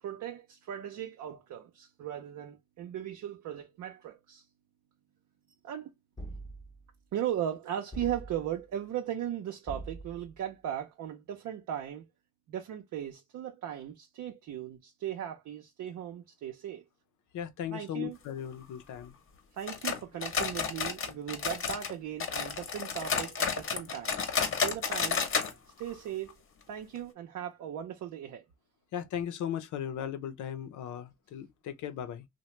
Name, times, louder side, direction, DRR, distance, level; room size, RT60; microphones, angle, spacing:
voice 1, 0.0-4.4 5.6-5.9 7.1-12.1 12.5-16.8 17.7-18.2 19.5-24.2 24.6-25.2 25.8-26.4 26.7-28.5, right 10 dB, 70° right, 0.7 m, -37 dB
sound 1, 6.2-6.9 7.9-8.7 9.7-10.4, right 2 dB, 15° left, 0.8 m, -43 dB
voice 2, 17.3-19.1 28.9-32.3, left 9 dB, 75° left, 0.6 m, -37 dB
sound 2, 19.7-21.9 22.2-25.5 25.8-25.9 26.3-26.4 27.0-27.1, left 6 dB, 45° left, 0.9 m, -31 dB
2.8 x 2.2 x 3.1 m
cardioid pair, 90°, 30 cm